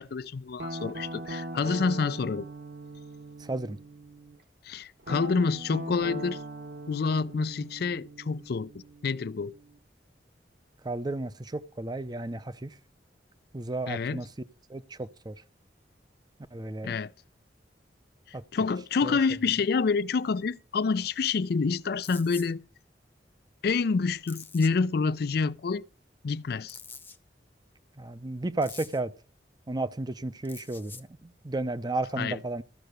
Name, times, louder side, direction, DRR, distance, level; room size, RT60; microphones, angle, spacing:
voice 1, 0.0-2.5 4.6-6.4 6.9-9.5 13.9-14.2 16.8-17.1 18.3-22.6 23.6-25.9 26.2-26.8 32.2-32.4, left 4 dB, 60° left, 0.4 m, -28 dB
Guitar, 0.6-4.4 5.0-9.8, right 2 dB, 65° right, 1.2 m, -41 dB
voice 2, 3.4-3.8 10.8-12.8 13.5-14.3 14.7-15.4 16.5-17.0 18.3-18.4 19.0-19.2 28.0-29.1 29.7-32.6, right 2 dB, 25° right, 0.6 m, -33 dB
sound 1, 22.0-22.5 24.3-24.7 26.7-27.2 28.6-29.0 30.4-31.0, left 4 dB, 10° left, 0.8 m, -45 dB
14.0 x 5.7 x 6.5 m
head